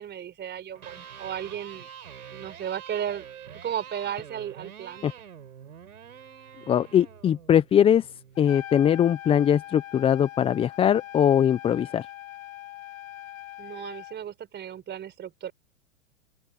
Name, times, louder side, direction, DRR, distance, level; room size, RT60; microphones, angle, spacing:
voice 1, 0.0-1.9 2.3-3.3 3.6-5.1 13.6-15.5, right 9 dB, 25° right, 5.1 m, -34 dB
Electric guitar, 0.6-8.7, right 8 dB, 80° right, 4.6 m, -46 dB
voice 2, 6.7-8.1 8.4-12.1, left 9 dB, 15° left, 0.6 m, -21 dB
Trumpet, 8.4-14.2, left 13 dB, 65° left, 3.9 m, -42 dB
open air
hypercardioid pair, 115°, 43 cm